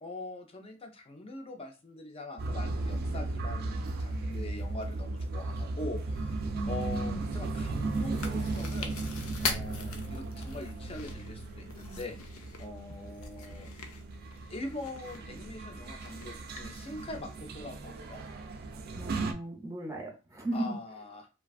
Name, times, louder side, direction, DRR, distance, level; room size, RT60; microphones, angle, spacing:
voice 1, 0.0-9.0 9.4-12.2 12.6-13.7 14.5-18.2 20.5-21.3, left 2 dB, 25° left, 5 dB, 0.5 m, -42 dB
sound 1, 2.4-19.3, right 2 dB, 45° right, 0.3 m, -36 dB
voice 2, 6.5-7.3 18.9-20.8, right 1 dB, 15° right, 0 dB, 0.7 m, -36 dB
Chewing mastication, 7.4-17.2, left 4 dB, 80° left, 0.5 m, -42 dB
3.2 x 2.3 x 2.3 m, 0.32 s
head